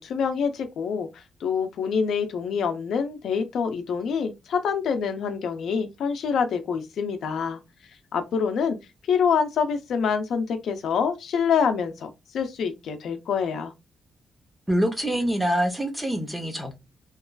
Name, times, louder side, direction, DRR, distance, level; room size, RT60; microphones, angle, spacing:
voice 1, 0.0-7.6 8.1-8.8 9.1-13.7, left 6 dB, 70° left, 0.5 m, -26 dB
voice 2, 14.7-16.7, equal, 5° right, 0.6 m, -25 dB
2.9 x 2.4 x 2.2 m
wide cardioid pair, 170°, 0 cm